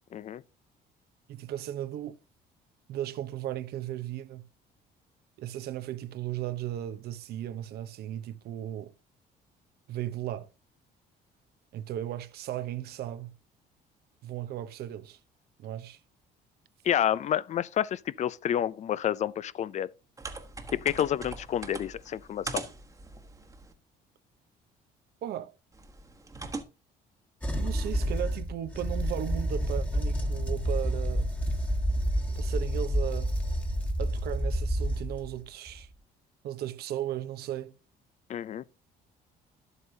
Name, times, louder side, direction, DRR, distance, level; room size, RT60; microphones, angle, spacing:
voice 1, 0.1-0.4 16.8-19.9 20.7-22.6 38.3-38.6, left 10 dB, 45° left, 0.4 m, -29 dB
voice 2, 1.3-2.2 2.9-4.4 5.4-8.9 9.9-10.5 11.7-13.3 14.2-15.2 15.6-16.0 25.2-25.5 27.5-31.3 32.4-33.4 34.0-35.9 36.4-37.7, right 12 dB, 70° right, 0.8 m, -36 dB
sound 1, 20.2-23.7 25.7-26.6, right 3 dB, 20° right, 1.2 m, -41 dB
sound 2, 27.4-35.4 35.7-35.8, equal, 10° left, 1.4 m, -29 dB
11.0 x 8.1 x 2.7 m
cardioid pair, 110°, 17 cm